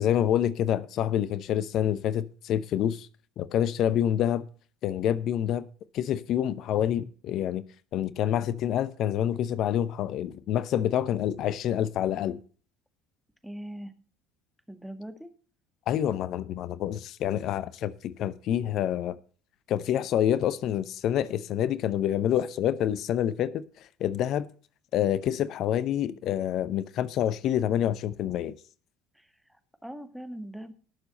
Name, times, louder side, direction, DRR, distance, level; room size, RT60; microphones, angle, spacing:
voice 1, 0.0-3.1 3.4-4.4 4.8-5.6 5.9-7.6 7.9-12.4 15.9-19.2 19.7-24.5 24.9-28.6, left 10 dB, 50° left, 0.7 m, -27 dB
voice 2, 13.4-13.9 14.7-15.3 29.1-30.7, right 1 dB, ahead, 1.8 m, -41 dB
18.0 x 7.0 x 4.2 m
figure-of-eight pair, 60°, 0 cm